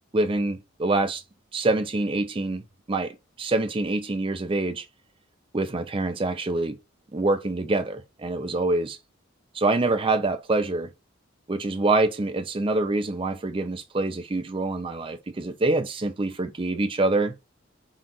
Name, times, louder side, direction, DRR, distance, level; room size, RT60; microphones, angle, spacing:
voice 1, 0.1-1.2 1.5-4.9 5.5-6.8 7.1-9.0 9.5-10.9 11.5-17.3, right 2 dB, 25° right, 0.5 m, -25 dB
3.8 x 2.4 x 4.0 m
head